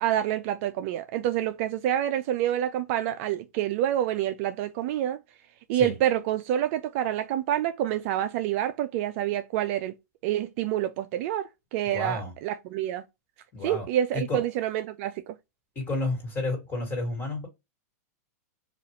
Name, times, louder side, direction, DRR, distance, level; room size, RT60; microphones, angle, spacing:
voice 1, 0.0-5.2 5.7-9.9 10.2-13.0 13.6-15.3, right 11 dB, 50° right, 0.3 m, -27 dB
voice 2, 11.8-12.3 13.5-13.9 14.1-14.4 15.7-17.5, left 2 dB, 20° left, 1.7 m, -31 dB
2.6 x 2.4 x 3.0 m
hypercardioid pair, 130°, 9 cm